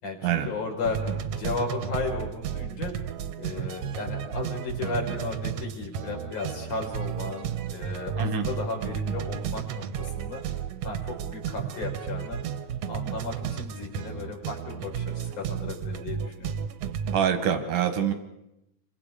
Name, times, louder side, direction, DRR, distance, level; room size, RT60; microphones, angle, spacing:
voice 1, 0.0-2.9 3.4-10.4 10.8-12.4 12.9-16.6, left 3 dB, 75° left, 0 dB, 6.0 m, -34 dB
sound 1, 0.8-17.2, right 8 dB, 65° right, 1.8 m, -33 dB
voice 2, 17.1-18.1, right 8 dB, 90° right, 8 dB, 3.2 m, -25 dB
28.0 x 24.5 x 5.0 m, 0.89 s
omnidirectional pair, 3.5 m